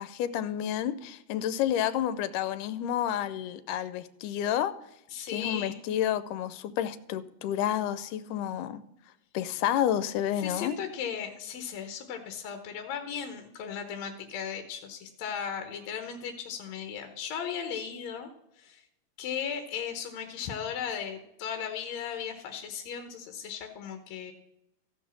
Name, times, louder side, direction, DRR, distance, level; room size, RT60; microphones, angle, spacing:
voice 1, 0.0-4.7 5.3-8.8 9.3-10.8, left 10 dB, 80° left, 13 dB, 2.2 m, -30 dB
voice 2, 5.1-5.8 10.4-18.3 18.6-18.8 19.2-24.3, left 7 dB, 65° left, 6 dB, 2.0 m, -36 dB
15.0 x 5.4 x 7.2 m, 0.85 s
omnidirectional pair, 3.7 m